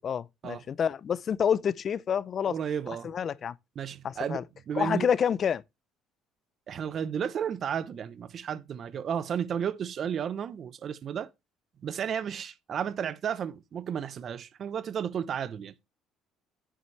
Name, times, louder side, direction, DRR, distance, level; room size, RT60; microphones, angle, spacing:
voice 1, 0.0-2.6 2.9-3.6 4.0-4.4 4.8-5.6, left 8 dB, 45° left, 0.5 m, -28 dB
voice 2, 2.5-3.1 3.8-5.1 6.7-11.3 11.8-15.7, right 8 dB, 50° right, 0.9 m, -33 dB
9.7 x 7.5 x 3.3 m
cardioid pair, 100°, 0 cm